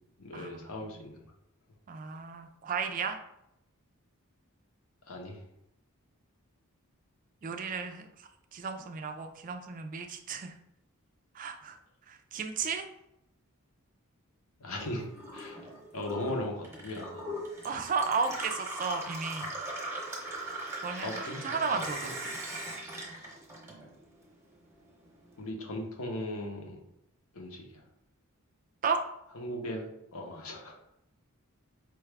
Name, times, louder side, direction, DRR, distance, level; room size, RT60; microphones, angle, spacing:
voice 1, 0.2-1.2 5.0-5.4 14.6-15.1 15.3-15.7 15.9-17.3 19.4-19.5 20.9-22.4 25.4-26.8 27.3-27.8 29.3-30.7, left 1 dB, 70° left, 2 dB, 0.8 m, -38 dB
voice 2, 1.9-3.2 7.4-10.5 11.3-11.8 12.1-12.8 17.6-19.5 20.8-21.1 21.4-22.1 28.8-29.0, right 5 dB, 40° right, 6 dB, 0.3 m, -33 dB
Gurgling / Water tap faucet / Sink (filling or washing), 14.7-24.2 24.5-25.4, right 1 dB, 10° right, 0.8 m, -40 dB
4.7 x 2.3 x 3.3 m, 0.82 s
head